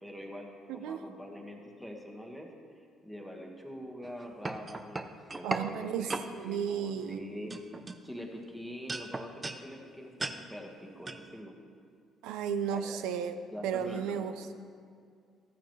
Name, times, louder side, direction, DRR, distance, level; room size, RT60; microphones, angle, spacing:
voice 1, 0.0-2.5 2.7-7.6 8.0-11.6 12.7-13.0 13.5-14.5, equal, 5° right, 0 dB, 1.6 m, -44 dB
voice 2, 0.7-1.0 5.4-7.3 12.2-14.5, right 7 dB, 85° right, 10 dB, 0.6 m, -34 dB
sound 1, 4.0-5.7 6.1-6.3 7.0-7.2 7.5-8.5 8.9-9.6 10.2-10.4 11.1-11.2, right 3 dB, 25° right, 0.6 m, -37 dB
13.5 x 8.9 x 3.2 m, 2.2 s
supercardioid pair, 75°, 0 cm